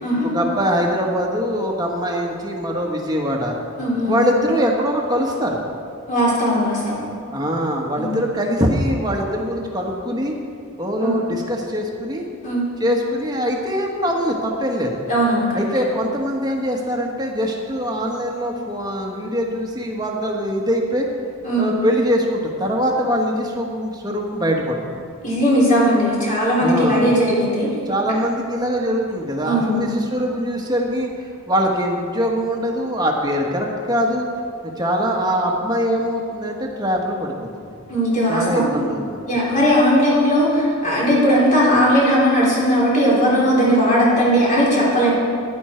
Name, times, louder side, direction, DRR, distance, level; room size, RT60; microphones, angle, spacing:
voice 1, 0.3-3.6 4.1-5.6 7.3-10.3 10.8-12.3 12.8-15.0 15.5-21.1 21.6-25.0 26.6-27.1 27.9-34.3 34.8-37.7 38.3-39.2, equal, 20° right, 0 dB, 1.4 m, -22 dB
voice 2, 3.8-4.2 6.1-7.0 7.9-8.1 11.0-11.2 12.4-12.7 15.1-15.6 21.4-21.7 25.2-27.7 29.4-29.9 37.9-38.7 39.3-45.1, equal, 35° left, -7 dB, 3.6 m, -18 dB
15.5 x 11.0 x 4.5 m, 2.3 s
head